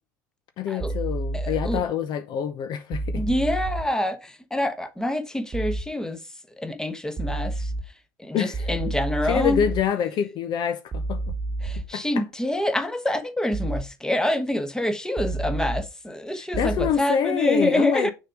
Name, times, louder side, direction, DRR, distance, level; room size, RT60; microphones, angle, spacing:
voice 1, 0.6-3.2 8.3-8.7 9.3-11.2 11.9-12.2 16.3-18.1, left 8 dB, 50° left, 0.8 m, -26 dB
sound 1, 0.8-1.8 2.9-3.8 5.5-5.8 7.2-7.8 8.5-9.8 10.9-11.8 13.5-13.8 15.2-15.8 16.5-16.9, right 2 dB, 25° right, 1.3 m, -29 dB
voice 2, 1.3-1.8 3.1-6.2 6.6-7.7 8.2-9.6 11.6-18.1, left 1 dB, 5° left, 1.2 m, -26 dB
6.5 x 3.8 x 4.9 m
hypercardioid pair, 75°, 9 cm